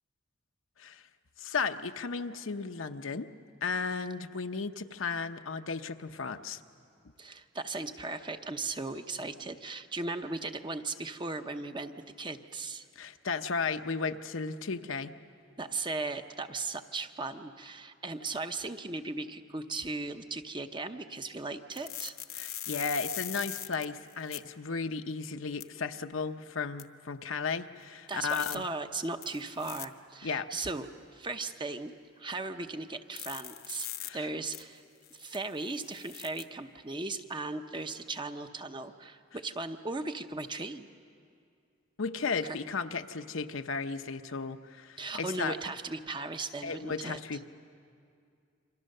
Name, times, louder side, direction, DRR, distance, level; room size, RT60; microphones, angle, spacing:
voice 1, 1.4-3.3 3.6-6.6 13.0-15.1 22.3-28.6 30.2-30.5 34.0-34.3 42.0-45.5 46.6-47.5, left 5 dB, 75° left, 7 dB, 0.8 m, -34 dB
voice 2, 7.2-11.9 12.2-12.9 15.6-22.2 28.1-30.9 31.1-33.9 34.1-34.8 35.1-40.9 42.4-42.6 45.0-47.2, right 3 dB, 25° right, 7 dB, 0.8 m, -37 dB
sound 1, 21.7-24.4 25.6-25.7 26.8-26.9 28.1-28.6 29.2-29.9 33.2-34.1 34.5-34.6 35.0-36.4, left 13 dB, 50° left, 0.8 m, -41 dB
29.0 x 24.5 x 6.6 m, 2.4 s
head